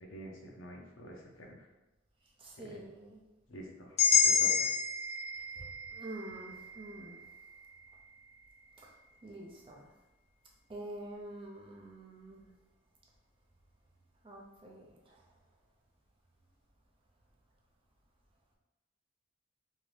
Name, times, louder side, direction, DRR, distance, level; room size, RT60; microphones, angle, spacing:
voice 1, 0.1-1.7 2.6-2.8 3.5-4.7, right 1 dB, 75° left, 0 dB, 0.6 m, -48 dB
voice 2, 2.4-3.3 5.6-7.2 8.8-8.9 9.2-9.9 10.7-12.5 14.2-15.3, right 1 dB, 25° right, -1 dB, 0.5 m, -47 dB
sound 1, 4.0-8.0, left 6 dB, 30° left, 0.6 m, -30 dB
2.7 x 2.6 x 3.2 m, 1.0 s
head